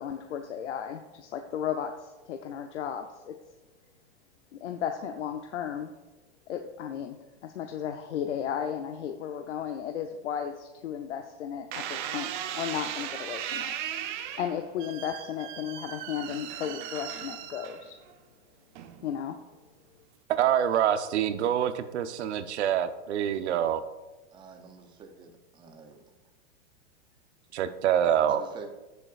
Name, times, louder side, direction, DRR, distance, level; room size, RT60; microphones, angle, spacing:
voice 1, 0.0-3.4 4.5-5.9 6.5-7.2 7.4-13.7 14.4-18.0 19.0-19.4, left 8 dB, 90° left, 5 dB, 0.7 m, -34 dB
sound 1, 11.7-18.1 18.7-19.2, right 10 dB, 45° right, 0.8 m, -37 dB
voice 2, 20.3-23.8 27.5-28.4, right 10 dB, 70° right, 10 dB, 0.8 m, -26 dB
voice 3, 24.3-26.0 28.1-28.7, right 5 dB, 15° right, 5 dB, 0.6 m, -46 dB
15.0 x 6.8 x 2.5 m, 1.1 s
supercardioid pair, 150°, 35 cm